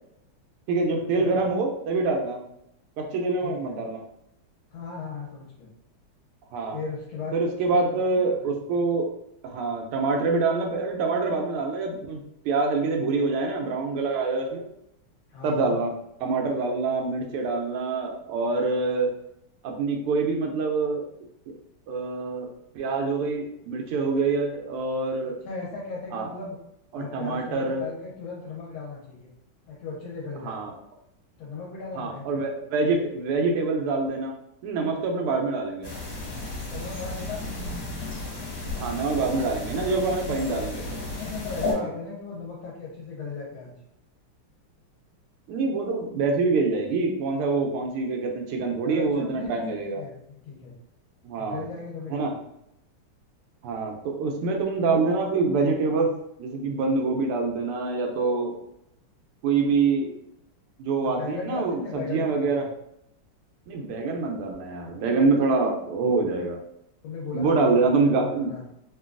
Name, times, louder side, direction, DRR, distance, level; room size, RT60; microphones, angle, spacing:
voice 1, 0.7-2.4 3.0-4.0 6.5-6.8 7.3-9.1 9.4-12.2 12.4-14.6 15.4-15.9 16.2-19.1 19.6-21.0 21.5-21.6 21.9-22.5 22.7-25.4 26.1-26.3 26.9-27.8 30.4-30.7 32.0-34.3 34.6-35.9 38.7-41.0 41.7-41.9 45.5-50.0 51.2-51.7 52.1-52.3 53.6-56.1 56.4-58.5 59.4-60.1 60.8-62.7 63.7-66.6 67.3-68.5, right 3 dB, 90° right, 2 dB, 1.5 m, -25 dB
voice 2, 3.4-3.8 4.7-5.7 6.7-7.4 7.7-8.6 15.3-15.8 25.4-26.6 26.9-29.3 29.7-30.6 31.4-32.4 36.7-37.8 40.0-40.5 41.1-43.7 48.9-50.7 51.4-52.4 61.0-62.7 67.0-67.9 68.2-68.7, left 4 dB, 70° left, -4 dB, 1.5 m, -37 dB
sound 1, 35.8-41.7, left 2 dB, 55° left, 1.5 m, -33 dB
3.7 x 2.2 x 2.4 m, 0.79 s
omnidirectional pair, 2.4 m